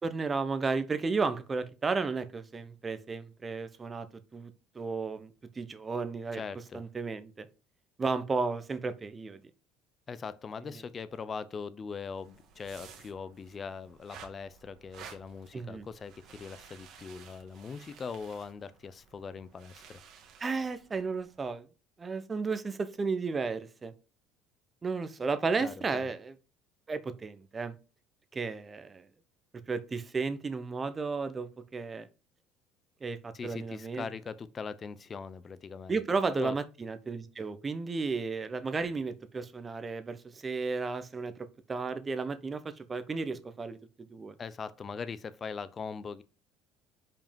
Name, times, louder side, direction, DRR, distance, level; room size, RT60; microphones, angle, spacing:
voice 1, 0.0-4.1 4.3-6.4 6.7-7.5 8.0-9.4 15.5-15.9 20.4-21.7 22.0-23.9 24.8-26.3 26.9-27.8 28.3-29.1 29.7-32.1 33.0-34.1 35.9-41.3 41.7-44.4, right 4 dB, 25° right, 1.0 m, -33 dB
voice 2, 6.3-6.8 10.1-20.0 25.6-26.1 33.3-36.0 36.4-36.6 44.4-46.2, left 5 dB, 30° left, 0.7 m, -41 dB
sound 1, 12.0-21.4, right 7 dB, 60° right, 1.8 m, -54 dB
5.4 x 5.1 x 5.2 m
supercardioid pair, 100°, 0 cm